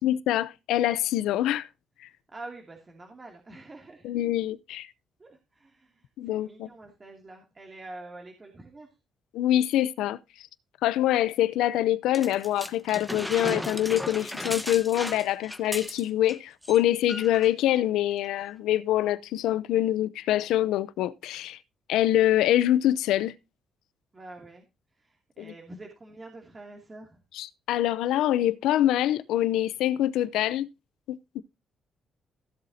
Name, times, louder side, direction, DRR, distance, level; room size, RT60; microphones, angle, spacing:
voice 1, 0.0-1.7 4.0-4.9 6.2-6.7 9.3-10.2 10.8-21.6 21.9-23.3 25.4-25.5 27.3-30.7 31.1-31.4, left 13 dB, 90° left, 0.7 m, -25 dB
voice 2, 2.3-4.1 5.2-8.9 24.1-24.7 25.0-27.2, right 2 dB, 30° right, 2.7 m, -46 dB
sound 1, 12.1-16.4 16.6-16.8 17.1-17.5 18.2-18.3, equal, 5° left, 1.4 m, -36 dB
16.0 x 7.8 x 2.8 m
cardioid pair, 90°, 0 cm